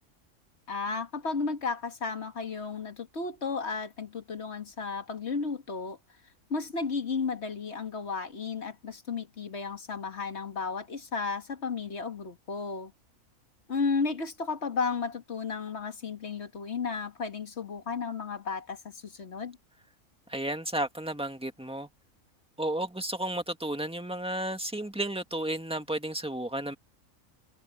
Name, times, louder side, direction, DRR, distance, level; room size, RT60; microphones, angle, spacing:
voice 1, 0.7-6.0 6.5-12.9 13.7-19.6, left 4 dB, 50° left, 2.0 m, -33 dB
voice 2, 20.3-21.9 22.6-26.7, right 1 dB, 5° right, 1.9 m, -32 dB
omnidirectional pair, 1.4 m